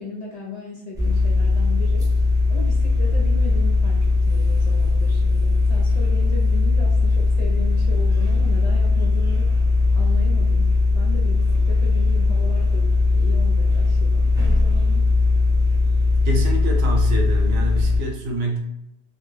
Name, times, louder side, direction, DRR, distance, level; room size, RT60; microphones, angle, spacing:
voice 1, 0.0-2.1 2.5-4.0 4.3-9.5 10.0-12.8 13.1-15.0, left 3 dB, 50° left, -3 dB, 0.6 m, -36 dB
sound 1, 1.0-18.0, left 3 dB, 5° right, 0.3 m, -19 dB
voice 2, 16.2-18.6, right 1 dB, 75° right, 1 dB, 0.8 m, -26 dB
2.3 x 2.1 x 3.1 m, 0.86 s
omnidirectional pair, 1.1 m